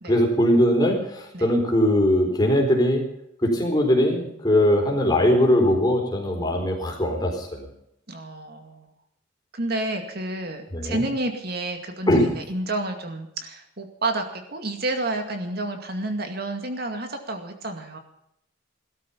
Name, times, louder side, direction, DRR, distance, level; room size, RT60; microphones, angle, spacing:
voice 1, 0.1-3.0 3.4-7.7 10.7-11.0 12.1-12.3, equal, 20° left, 1 dB, 4.5 m, -20 dB
voice 2, 8.1-8.9 9.5-18.0, right 2 dB, 50° right, 5 dB, 2.2 m, -30 dB
18.0 x 13.0 x 5.8 m, 0.77 s
head